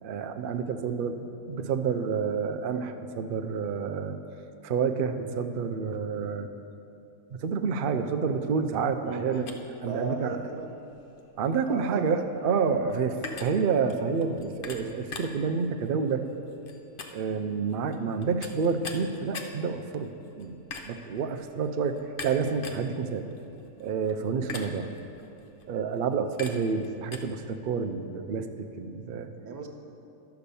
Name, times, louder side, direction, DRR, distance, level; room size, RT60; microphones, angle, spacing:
voice 1, 0.0-4.2 4.6-6.5 7.4-9.5 9.8-10.4 11.4-16.2 17.1-20.1 20.4-20.6 20.8-23.3 23.8-24.9 25.7-28.5 28.8-29.3, right 5 dB, 90° right, 6 dB, 0.4 m, -29 dB
voice 2, 9.0-9.3 9.9-10.9 11.7-12.1 29.4-29.7, right 4 dB, 70° right, 3 dB, 1.4 m, -36 dB
sound 1, 9.3-27.2, left 4 dB, 50° left, 0.7 m, -44 dB
12.0 x 5.8 x 6.9 m, 2.8 s
omnidirectional pair, 1.7 m